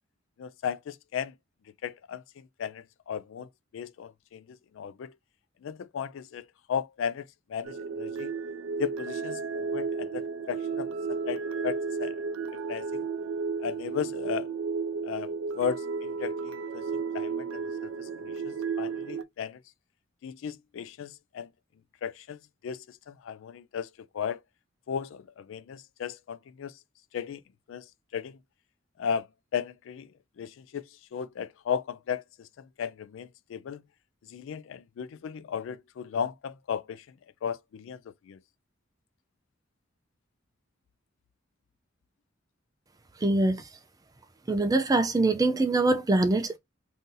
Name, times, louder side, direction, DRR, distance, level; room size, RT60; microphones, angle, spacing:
voice 1, 0.4-1.3 1.8-2.2 2.6-5.1 5.6-8.3 8.8-12.2 12.7-13.1 13.6-14.5 15.0-19.6 20.2-21.5 22.0-22.4 22.6-23.9 24.1-24.4 24.9-26.7 27.1-27.4 27.7-27.9 28.1-28.4 29.0-29.3 29.5-30.1 30.4-30.8 31.1-33.8 34.3-37.0 37.4-38.0 38.3-38.4, left 7 dB, 75° left, 0.3 m, -35 dB
sound 1, 7.7-19.2, right 5 dB, 85° right, 0.4 m, -33 dB
voice 2, 43.2-43.6 44.5-46.6, right 2 dB, 20° right, 0.4 m, -23 dB
2.7 x 2.6 x 3.7 m
head